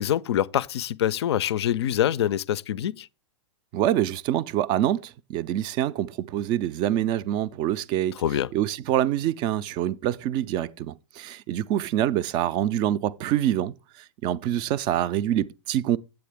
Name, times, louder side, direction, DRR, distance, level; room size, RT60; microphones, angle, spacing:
voice 1, 0.0-3.1 8.2-8.5, left 11 dB, 60° left, 0.4 m, -25 dB
voice 2, 3.7-8.2 8.5-13.7 14.2-16.0, right 12 dB, 30° right, 0.4 m, -25 dB
8.4 x 7.7 x 3.4 m
figure-of-eight pair, 105°, 16 cm